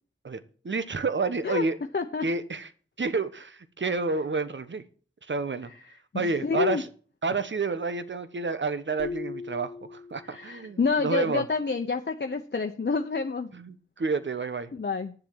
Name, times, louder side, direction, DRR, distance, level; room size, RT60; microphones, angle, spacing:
voice 1, 0.6-1.8 2.2-2.7 3.0-4.8 5.3-5.7 6.1-6.9 7.2-11.4 13.5-14.7, right 4 dB, 65° right, 1.2 m, -29 dB
voice 2, 1.9-2.2 6.1-6.8 10.3-13.5 14.7-15.1, left 4 dB, 55° left, 0.9 m, -28 dB
sound 1, 9.0-10.7, left 5 dB, 5° right, 2.7 m, -39 dB
10.5 x 7.5 x 7.3 m
cardioid pair, 40°, 21 cm